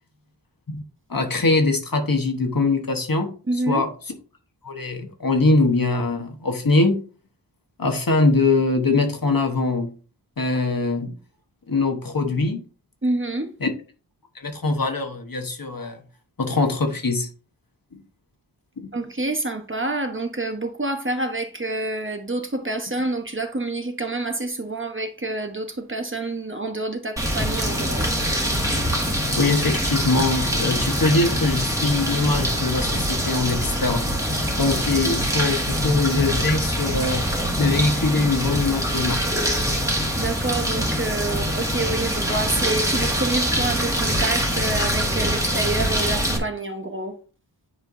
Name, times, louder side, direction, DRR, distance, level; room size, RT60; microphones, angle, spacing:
voice 1, 1.1-3.3 3.7-3.9 4.6-7.0 7.8-9.9 10.4-11.1 11.7-12.6 13.6-13.7 14.3-16.0 16.4-17.3 17.9-18.0 18.8-18.9 29.4-34.1 34.6-37.3 37.6-39.2, left 3 dB, 50° left, 1.2 m, -22 dB
voice 2, 3.5-3.8 13.0-13.5 18.9-28.1 40.1-47.1, right 2 dB, 30° right, 1.0 m, -27 dB
sound 1, 27.2-46.4, equal, 5° right, 1.6 m, -24 dB
9.7 x 4.4 x 2.7 m
wide cardioid pair, 60°, 43 cm